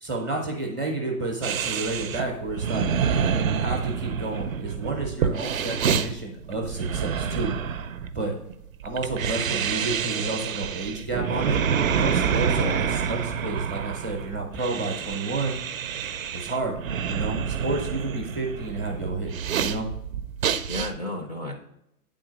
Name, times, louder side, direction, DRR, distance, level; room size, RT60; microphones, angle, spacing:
voice 1, 0.0-2.9 3.5-7.6 8.1-8.3 8.8-11.6 11.8-15.5 16.3-16.8 17.1-19.3 19.6-19.9, right 3 dB, 15° right, 1 dB, 0.6 m, -30 dB
sound 1, 1.4-20.9, right 7 dB, 55° right, 0.6 m, -28 dB
voice 2, 12.2-12.9 20.7-21.6, left 2 dB, 30° left, 2 dB, 0.4 m, -33 dB
8.8 x 3.8 x 5.0 m, 0.81 s
hypercardioid pair, 160°, 48 cm